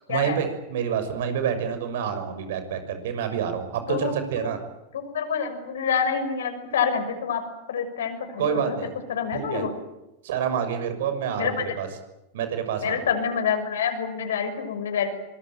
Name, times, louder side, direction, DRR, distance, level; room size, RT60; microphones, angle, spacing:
voice 1, 0.1-4.6 8.4-8.9 9.3-9.6 10.2-11.9 12.3-13.0, right 8 dB, 65° right, 8 dB, 6.4 m, -28 dB
voice 2, 3.9-4.5 5.1-9.7 11.4-11.6 12.8-15.1, left 7 dB, 75° left, 7 dB, 6.3 m, -27 dB
25.5 x 22.0 x 9.3 m, 0.98 s
hypercardioid pair, 95°, 0 cm